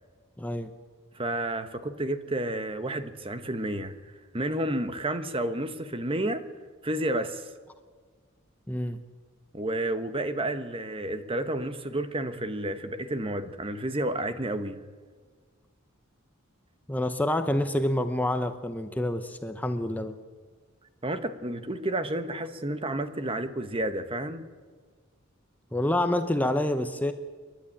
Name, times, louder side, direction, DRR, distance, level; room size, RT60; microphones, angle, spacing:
voice 1, 0.4-0.7 8.7-9.0 16.9-20.2 25.7-27.1, left 1 dB, 10° left, 0.8 m, -27 dB
voice 2, 1.1-4.0 4.3-6.4 6.8-7.5 9.5-14.8 21.0-24.5, right 1 dB, 25° right, 1.1 m, -31 dB
29.0 x 11.5 x 8.6 m
head